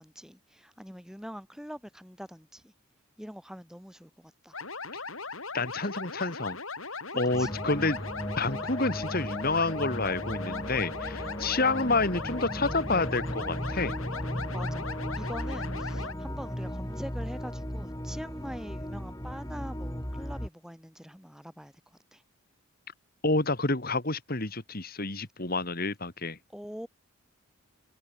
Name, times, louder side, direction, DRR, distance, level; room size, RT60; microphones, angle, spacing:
voice 1, 0.0-2.7 3.2-4.6 7.1-7.6 11.1-11.4 14.5-22.2 26.5-26.9, equal, 5° right, 7.5 m, -44 dB
sound 1, 4.5-16.1, left 4 dB, 75° left, 5.2 m, -39 dB
voice 2, 5.5-6.6 7.1-8.1 8.4-13.9 23.2-26.4, left 3 dB, 45° left, 2.8 m, -29 dB
sound 2, 7.3-20.5, equal, 15° left, 5.1 m, -36 dB
head